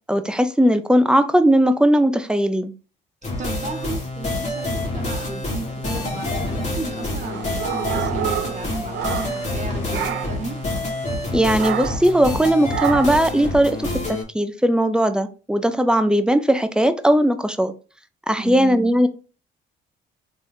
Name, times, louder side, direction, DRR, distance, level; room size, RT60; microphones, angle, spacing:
voice 1, 0.1-2.7 11.3-17.7 18.3-19.1, equal, 5° right, 10 dB, 0.4 m, -18 dB
sound 1, 3.2-14.2, left 2 dB, 35° left, 1.5 m, -27 dB
voice 2, 3.4-10.6 18.4-18.9, right 3 dB, 35° right, 2 dB, 1.1 m, -34 dB
sound 2, 4.6-10.6, left 4 dB, 80° left, 1.2 m, -42 dB
sound 3, 7.2-9.6 9.9-10.5 11.6-12.1 12.7-13.3, right 11 dB, 70° right, 0.4 m, -28 dB
3.8 x 3.1 x 2.6 m, 0.35 s
cardioid pair, 90°, 20 cm